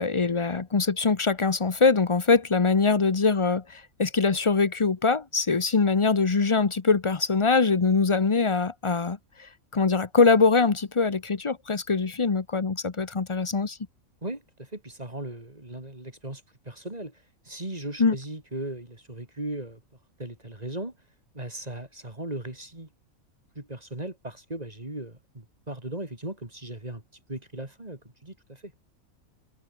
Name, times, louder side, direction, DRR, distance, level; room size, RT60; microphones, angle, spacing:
voice 1, 0.0-13.8 18.0-18.2, left 4 dB, 25° left, 0.7 m, -23 dB
voice 2, 14.2-19.8 20.2-20.9 21.3-22.9 23.6-27.0 27.3-28.7, right 1 dB, 25° right, 3.7 m, -37 dB
omnidirectional pair, 1.5 m